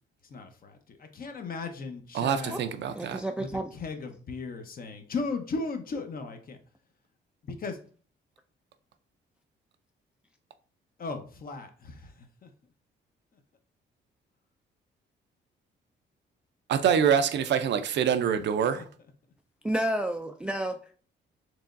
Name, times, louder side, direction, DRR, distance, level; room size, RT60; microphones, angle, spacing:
voice 1, 0.2-2.6 3.4-6.6 7.4-7.8 11.0-12.5 18.7-18.9, left 3 dB, 45° left, 0.8 m, -37 dB
voice 2, 2.1-3.2 16.7-18.8, right 8 dB, 65° right, 0.5 m, -25 dB
voice 3, 3.0-3.7 19.6-20.8, right 1 dB, 5° right, 0.3 m, -30 dB
4.6 x 3.0 x 2.5 m
cardioid pair, 90°, 20 cm